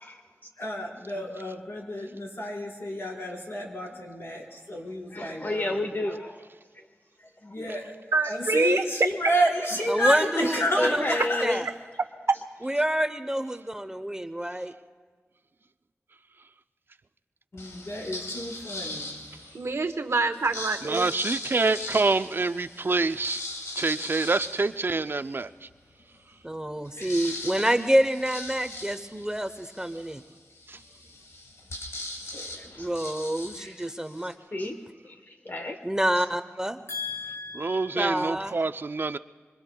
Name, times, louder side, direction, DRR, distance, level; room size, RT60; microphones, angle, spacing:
voice 1, 0.0-0.5 5.1-6.4 6.7-6.9 7.5-7.6 10.8-11.6 32.5-32.9 33.6-34.8 35.0-35.8 36.2-36.3, left 1 dB, 45° left, 6 dB, 1.0 m, -32 dB
voice 2, 0.6-5.8 7.4-7.9 8.2-11.5 17.5-19.2 27.0-27.3 36.9-38.2, equal, 65° left, -2 dB, 4.5 m, -30 dB
voice 3, 8.1-8.8 19.5-21.0, right 3 dB, 75° right, 7 dB, 1.0 m, -26 dB
voice 4, 9.9-11.2 11.4-11.7 12.6-14.7 26.4-30.2 32.8-34.3 34.6-34.7 35.8-36.8 38.0-38.6, right 1 dB, 15° right, 9 dB, 0.7 m, -27 dB
sound 1, 17.6-19.7 20.3-25.5 26.0-26.1 26.3-34.3, left 2 dB, 90° left, 1.8 m, -40 dB
voice 5, 20.8-23.4 23.7-25.7 30.7-30.8 37.5-39.2, right 3 dB, 50° right, 12 dB, 0.4 m, -26 dB
25.5 x 25.0 x 2.3 m, 1.5 s
wide cardioid pair, 70°, 5 cm